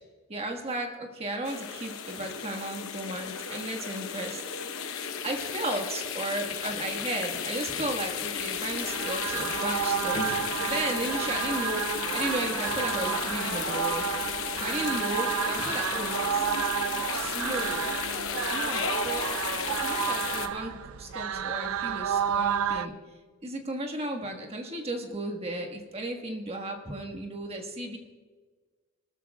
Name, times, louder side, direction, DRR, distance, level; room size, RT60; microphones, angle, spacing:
voice 1, 0.3-4.4 5.2-14.0 14.5-16.5 17.1-17.8 18.5-19.3 19.6-22.9 23.4-28.0, right 1 dB, 30° right, 3 dB, 1.6 m, -34 dB
sound 1, 1.4-20.5, left 7 dB, 85° left, 0.9 m, -34 dB
sound 2, 8.5-22.9, right 8 dB, 85° right, 0.4 m, -31 dB
sound 3, 10.1-16.0 16.5-16.9, left 1 dB, 60° left, 2.5 m, -46 dB
19.5 x 13.5 x 2.4 m, 1.4 s
head